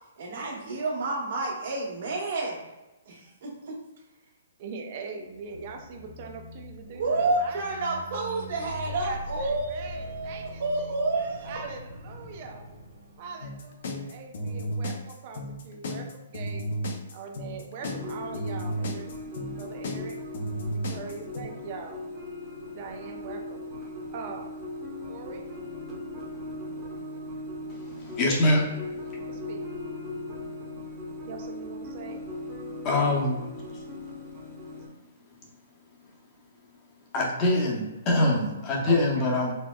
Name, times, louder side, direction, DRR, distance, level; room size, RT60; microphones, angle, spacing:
voice 1, 0.2-2.6 3.1-3.5 7.0-11.6, right 2 dB, 60° right, -4 dB, 1.3 m, -29 dB
voice 2, 4.6-8.0 8.9-10.9 11.4-12.6 13.2-16.7 17.1-19.1 19.6-20.2 20.9-22.0 22.7-23.7 24.1-24.6 25.1-25.4 28.7-28.8 29.1-29.7 31.3-32.2 38.9-39.3, right 5 dB, 40° right, 3 dB, 0.5 m, -42 dB
sound 1, 5.2-14.0, left 1 dB, 85° right, 0.9 m, -43 dB
sound 2, 13.4-21.4, equal, 60° left, 0.5 m, -33 dB
sound 3, 17.8-34.9, left 1 dB, 15° right, 0.9 m, -38 dB
voice 3, 27.7-28.7 32.8-33.4 33.7-33.8 37.1-39.5, left 2 dB, 25° left, -2 dB, 0.8 m, -24 dB
4.1 x 2.0 x 2.3 m, 1.0 s
hypercardioid pair, 150°, 0 cm